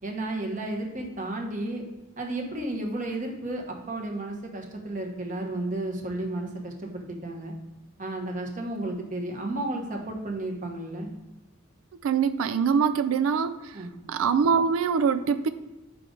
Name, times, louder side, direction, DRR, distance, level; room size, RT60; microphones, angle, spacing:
voice 1, 0.0-1.8 2.2-7.5 8.0-11.1 13.7-13.9, right 2 dB, 40° right, 1 dB, 1.2 m, -33 dB
voice 2, 12.0-13.8 14.1-15.5, right 6 dB, 85° right, 12 dB, 0.4 m, -24 dB
7.5 x 5.2 x 3.8 m, 1.1 s
head